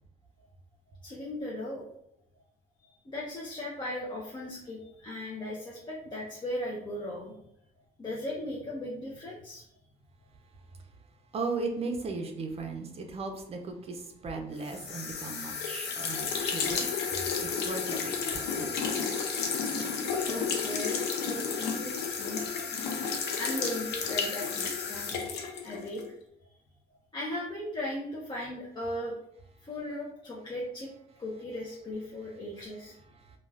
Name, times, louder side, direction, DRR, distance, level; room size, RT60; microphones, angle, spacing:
voice 1, 1.0-1.8 3.0-7.3 8.0-9.6 20.3-22.4 23.4-25.1 25.6-26.0 27.1-29.1 29.6-30.9 31.2-33.0, left 1 dB, 25° left, -4 dB, 0.5 m, -37 dB
voice 2, 11.3-16.9 17.4-18.7 33.1-33.4, right 3 dB, 35° right, 4 dB, 0.5 m, -37 dB
sound 1, 14.6-26.1, left 5 dB, 80° left, 0.5 m, -32 dB
2.3 x 2.3 x 3.2 m, 0.73 s
cardioid pair, 110°, 17 cm